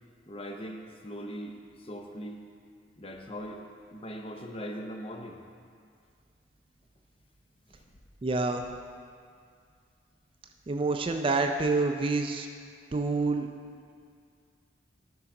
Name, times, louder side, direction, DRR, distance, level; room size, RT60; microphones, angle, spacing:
voice 1, 0.3-1.6 1.8-2.4 3.0-3.6 3.9-5.4, equal, 30° left, 3 dB, 0.6 m, -40 dB
voice 2, 8.2-8.6 10.7-12.5 12.9-13.5, right 3 dB, 30° right, 5 dB, 0.4 m, -27 dB
10.0 x 3.8 x 5.9 m, 2.2 s
head